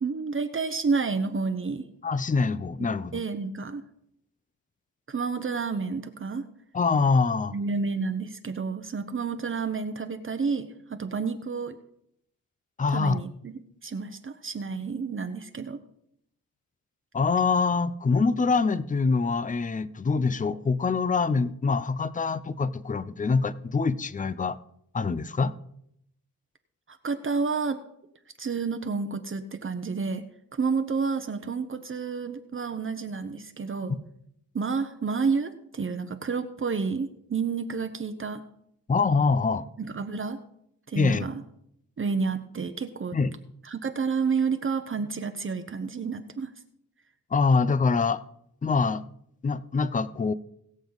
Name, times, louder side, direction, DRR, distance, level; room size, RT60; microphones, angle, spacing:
voice 1, 0.0-1.9 3.1-3.8 5.1-6.5 7.5-11.8 12.9-15.8 26.9-27.8 28.4-30.2 30.5-34.0 34.5-38.4 39.8-40.4 40.9-41.4 42.0-43.2 43.6-46.5, right 5 dB, 35° right, 1.0 m, -30 dB
voice 2, 2.0-3.2 6.7-7.5 12.8-13.2 17.1-24.6 24.9-25.5 38.9-39.6 40.9-41.3 43.1-43.3 47.3-48.2 48.6-49.0 49.4-50.3, left 4 dB, 20° left, 0.6 m, -24 dB
21.0 x 7.1 x 4.0 m
cardioid pair, 95°, 35 cm